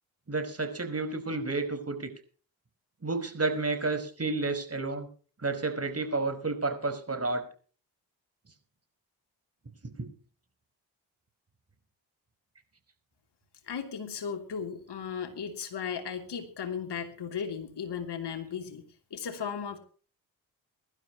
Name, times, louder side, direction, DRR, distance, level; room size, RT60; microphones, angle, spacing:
voice 1, 0.3-2.1 3.0-5.1 5.4-7.4 10.0-10.1, right 3 dB, 30° right, 8 dB, 5.0 m, -31 dB
voice 2, 13.6-18.8 19.1-19.8, left 7 dB, 60° left, 4 dB, 3.1 m, -36 dB
23.0 x 12.0 x 3.0 m, 0.40 s
hypercardioid pair, 40°, 47 cm